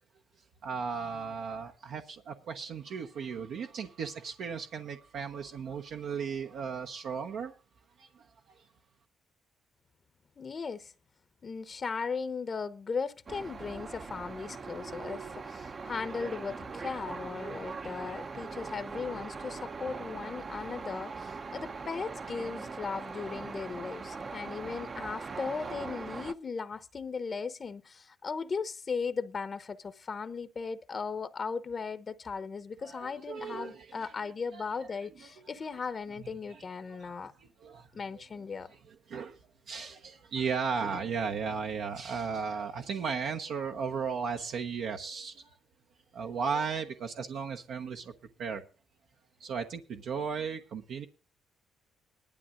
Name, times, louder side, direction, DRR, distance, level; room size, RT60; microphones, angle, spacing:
voice 1, 0.6-7.5 8.0-8.7 32.8-34.1 34.5-34.6 36.5-36.6 36.9-37.9 38.6-39.4 39.7-45.6 46.1-48.1 48.4-48.6 49.4-51.1, right 6 dB, 75° right, 1.1 m, -36 dB
voice 2, 10.4-10.9 11.4-37.3 37.9-38.7, left 5 dB, 40° left, 0.8 m, -37 dB
sound 1, 13.3-26.3, right 4 dB, 40° right, 0.7 m, -41 dB
19.5 x 12.0 x 2.5 m
cardioid pair, 90°, 0 cm